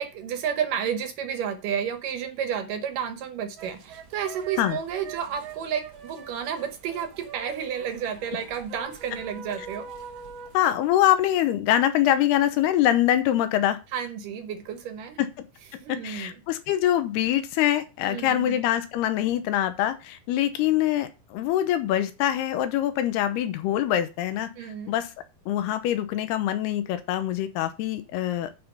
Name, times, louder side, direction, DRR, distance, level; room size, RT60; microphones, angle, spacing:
voice 1, 0.0-9.9 13.9-15.2 15.7-16.4 18.1-18.6 24.6-25.0, right 8 dB, 65° right, 2.4 m, -31 dB
sound 1, 3.6-10.6, right 6 dB, 85° right, 1.1 m, -43 dB
voice 2, 10.5-13.8 15.2-15.5 15.9-25.1 25.5-28.5, left 12 dB, 85° left, 3.0 m, -24 dB
9.3 x 5.9 x 5.6 m
omnidirectional pair, 4.6 m